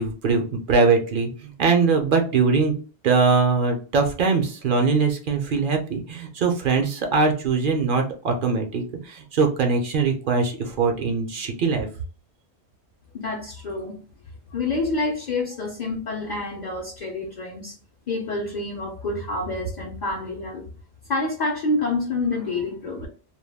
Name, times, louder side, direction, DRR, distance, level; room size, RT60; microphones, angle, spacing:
voice 1, 0.0-2.7 3.0-11.9, right 4 dB, 60° right, 3 dB, 0.7 m, -22 dB
voice 2, 13.1-14.0 14.5-17.7 18.1-20.6 21.1-23.1, left 2 dB, 55° left, 0 dB, 0.6 m, -27 dB
2.3 x 2.2 x 3.2 m, 0.38 s
omnidirectional pair, 1.1 m